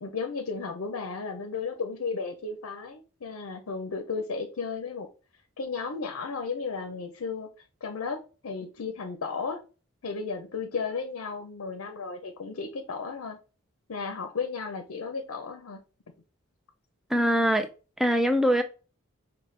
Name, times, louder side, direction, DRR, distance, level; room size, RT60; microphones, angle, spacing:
voice 1, 0.0-5.1 5.6-7.5 7.8-9.6 10.0-13.4 13.9-15.8, left 4 dB, 75° left, 0.6 m, -34 dB
voice 2, 17.1-17.7 18.0-18.6, equal, ahead, 0.3 m, -22 dB
5.6 x 2.2 x 3.2 m
head